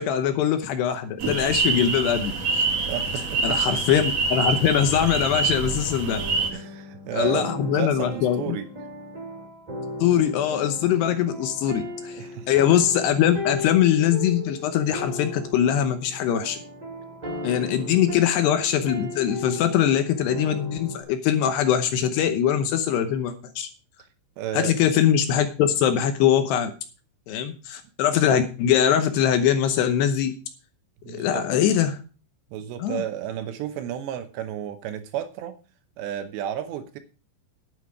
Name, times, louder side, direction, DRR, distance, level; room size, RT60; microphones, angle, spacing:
voice 1, 0.0-2.7 3.4-6.2 7.1-8.6 10.0-16.6 17.4-23.7 24.5-26.7 27.3-30.3 31.1-32.0 32.8-33.0, left 9 dB, 75° left, 8 dB, 2.7 m, -22 dB
sound 1, 1.2-6.5, right 4 dB, 60° right, 1.8 m, -26 dB
voice 2, 2.8-3.6 6.5-8.7 12.2-12.5 24.4-24.7 31.0-31.4 32.5-35.6 36.0-37.0, right 11 dB, 75° right, 10 dB, 2.9 m, -32 dB
sound 2, 4.4-21.0, left 2 dB, 15° right, 1.3 m, -36 dB
11.0 x 9.2 x 4.8 m, 0.34 s
omnidirectional pair, 5.4 m